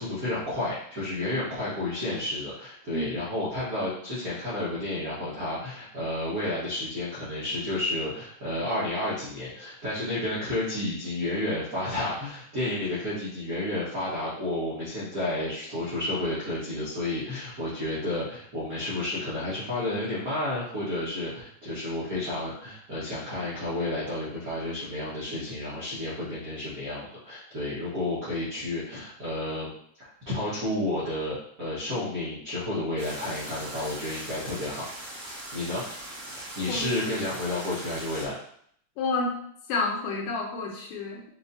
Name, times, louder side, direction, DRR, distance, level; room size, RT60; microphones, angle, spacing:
voice 1, 0.0-29.7 30.0-34.8 35.5-35.8 36.4-38.4, left 1 dB, 90° right, -10 dB, 0.7 m, -31 dB
sound 1, 33.0-38.2, right 1 dB, 40° right, 1.4 m, -40 dB
voice 2, 39.0-39.4 39.7-41.3, left 3 dB, 75° left, 0 dB, 2.1 m, -29 dB
6.7 x 2.8 x 2.7 m, 0.66 s
omnidirectional pair, 3.9 m